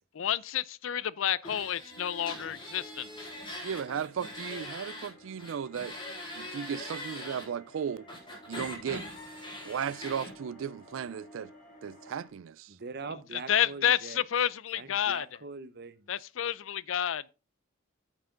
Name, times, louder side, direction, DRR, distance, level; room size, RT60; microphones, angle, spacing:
voice 1, 0.1-3.3 13.5-15.3 16.1-17.3, left 10 dB, 75° left, 0.5 m, -30 dB
sound 1, 1.4-5.1 5.4-7.4 8.1-10.3, left 1 dB, 25° left, 4.1 m, -42 dB
sound 2, 1.9-12.3, equal, 45° left, 4.2 m, -53 dB
voice 2, 3.6-6.0 6.3-8.1 8.5-9.0 9.6-11.5 11.8-12.7, right 7 dB, 75° right, 0.4 m, -35 dB
voice 3, 12.7-14.2 14.7-16.1, right 4 dB, 55° right, 0.9 m, -42 dB
8.8 x 8.2 x 3.8 m
head